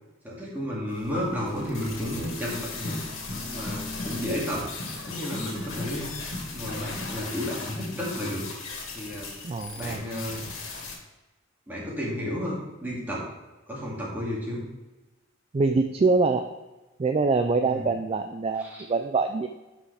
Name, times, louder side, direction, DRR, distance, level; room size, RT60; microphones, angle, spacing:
voice 1, 0.2-3.0 3.4-4.7 5.1-6.1 6.5-8.4 8.9-9.3 9.8-10.4 11.7-13.2 13.7-14.6 17.6-17.9 18.6-18.8, equal, 10° right, -6 dB, 2.2 m, -32 dB
sound 1, 0.9-11.0, left 4 dB, 80° left, 2.1 m, -38 dB
sound 2, 1.1-7.2, left 1 dB, 55° left, 1.9 m, -39 dB
voice 2, 9.4-10.0 15.5-16.5 17.0-19.5, right 3 dB, 30° right, 6 dB, 0.3 m, -24 dB
10.5 x 5.0 x 3.3 m, 1.1 s
head